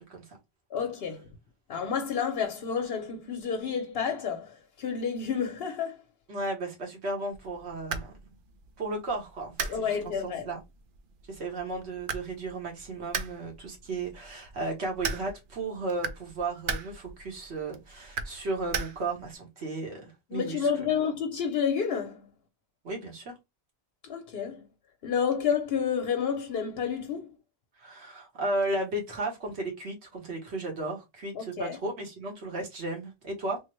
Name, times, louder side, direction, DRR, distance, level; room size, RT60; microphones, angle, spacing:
voice 1, 0.7-1.3 1.7-6.0 9.7-10.5 20.3-22.3 24.0-24.7 25.0-27.3 31.3-31.8, left 7 dB, 65° left, 0.8 m, -30 dB
voice 2, 6.3-8.1 8.8-10.6 11.3-20.9 22.8-23.3 27.8-33.6, right 2 dB, 85° right, 1.5 m, -34 dB
sound 1, 7.3-19.3, right 5 dB, 60° right, 0.6 m, -39 dB
3.5 x 2.1 x 3.0 m
omnidirectional pair, 1.1 m